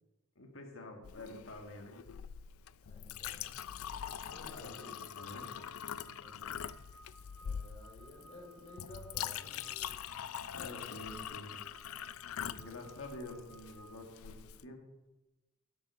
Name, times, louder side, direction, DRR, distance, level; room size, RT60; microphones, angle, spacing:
voice 1, 0.4-2.0 4.4-5.5 10.5-11.6 12.3-14.8, left 1 dB, 65° left, 3 dB, 1.7 m, -48 dB
Chink clink, 1.0-14.6, left 9 dB, 80° left, 0.4 m, -44 dB
voice 2, 2.9-3.5 4.3-4.9 6.0-6.8 7.4-10.0, left 1 dB, 30° left, -1 dB, 3.4 m, -54 dB
sound 1, 4.0-14.0, right 1 dB, 5° left, 0.6 m, -59 dB
9.6 x 8.2 x 5.5 m, 1.0 s
head